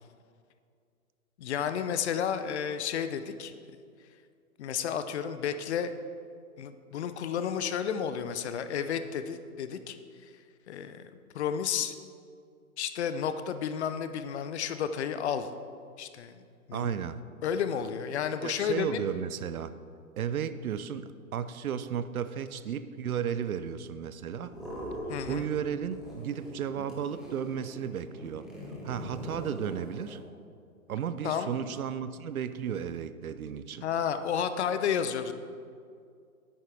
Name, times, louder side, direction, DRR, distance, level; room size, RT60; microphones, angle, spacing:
voice 1, 1.4-3.5 4.6-5.9 6.6-10.0 10.7-11.9 12.8-15.5 16.0-16.4 16.7-16.9 17.4-19.0 25.1-25.5 31.2-31.5 33.8-35.3, left 8 dB, 50° left, 10 dB, 0.6 m, -31 dB
voice 2, 16.7-17.2 18.4-19.7 20.2-24.5 25.3-28.5 28.8-30.2 30.9-33.9, right 8 dB, 70° right, 13 dB, 0.6 m, -34 dB
sound 1, 24.4-25.6 25.9-30.2, equal, ahead, 1.7 m, -42 dB
10.5 x 8.9 x 3.3 m, 2.2 s
figure-of-eight pair, 120°, 44 cm